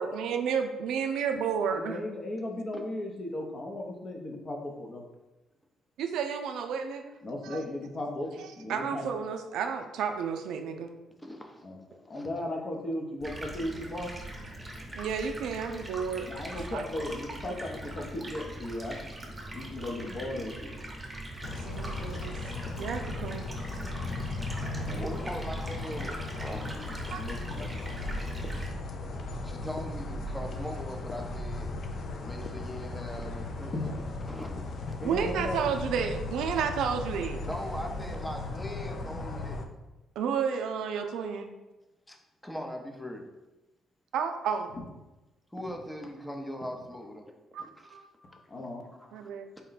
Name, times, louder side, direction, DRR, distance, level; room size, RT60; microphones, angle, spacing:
voice 1, 0.0-2.0 6.0-7.1 7.4-7.6 8.4-10.9 15.0-16.3 16.7-16.8 21.6-22.4 22.8-23.5 27.1-27.2 35.0-37.5 40.2-41.5 44.1-44.7 47.5-48.1 49.1-49.5, right 6 dB, 85° right, 6 dB, 0.4 m, -31 dB
voice 2, 1.7-5.0 7.2-8.3 8.6-9.1 11.6-11.8 12.1-14.1 16.2-19.0 19.5-20.7 24.6-25.2 27.1-27.7 33.7-33.9 35.0-35.6 48.5-48.8, left 1 dB, 40° left, 1 dB, 0.7 m, -36 dB
voice 3, 11.2-12.4 24.0-26.6 29.4-31.7 32.2-35.0 37.4-39.6 42.1-42.2 42.4-43.2 45.5-47.2 47.6-48.4 49.0-49.3 49.5-49.6, equal, 10° left, 3 dB, 0.6 m, -41 dB
Stream, 13.2-28.7, right 1 dB, 15° right, 0.9 m, -41 dB
sound 1, 21.4-39.7, left 2 dB, 60° left, 0.4 m, -36 dB
4.2 x 2.2 x 3.9 m, 1.1 s
cardioid pair, 90°, 0 cm